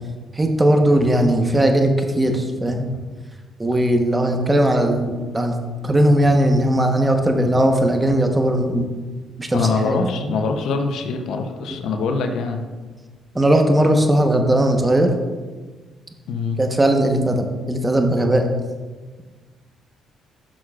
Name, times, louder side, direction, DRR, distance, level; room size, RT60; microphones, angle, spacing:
voice 1, 0.4-2.9 3.6-5.6 5.8-8.9 9.4-10.3 13.3-15.1 16.6-18.5, right 1 dB, 20° right, 4 dB, 1.1 m, -18 dB
voice 2, 9.5-12.6 16.3-16.6, left 4 dB, 70° left, 5 dB, 0.7 m, -23 dB
10.0 x 6.2 x 2.5 m, 1.4 s
supercardioid pair, 65°, 0 cm